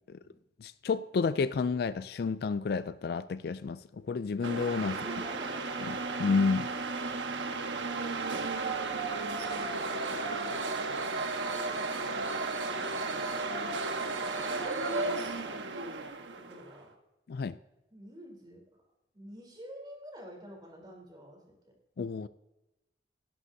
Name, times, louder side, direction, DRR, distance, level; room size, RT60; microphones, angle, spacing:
voice 1, 0.6-5.0 5.8-5.9 6.2-6.7 17.3-17.6 22.0-22.3, left 4 dB, 55° left, 15 dB, 0.3 m, -30 dB
sound 1, 4.4-16.7, right 3 dB, 85° right, 1.3 m, -34 dB
voice 2, 4.9-5.6 10.8-11.1 11.6-11.7 12.0-13.4 14.4-15.6 16.3-16.9 17.9-18.6 19.1-21.6, equal, 25° right, 1 dB, 3.6 m, -50 dB
18.0 x 11.0 x 2.7 m, 0.98 s
head